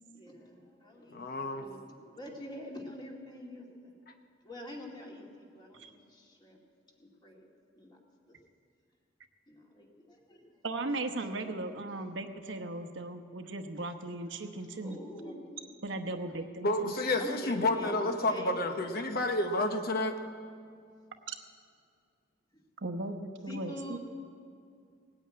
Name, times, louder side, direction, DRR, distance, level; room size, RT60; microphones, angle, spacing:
voice 1, 0.1-3.9 4.4-6.6 7.0-7.5 7.7-8.0 8.3-8.4 9.5-10.4 11.5-12.0 14.8-15.8 17.2-18.7 22.5-22.6 23.5-24.0, left 1 dB, 25° left, -1 dB, 2.2 m, -45 dB
voice 2, 1.1-1.7 16.6-20.2, left 2 dB, 50° left, 6 dB, 0.9 m, -30 dB
voice 3, 10.6-15.0 15.8-17.0 21.3-21.4 22.8-24.0, right 2 dB, 70° right, 7 dB, 1.0 m, -37 dB
18.5 x 8.9 x 8.7 m, 2.3 s
head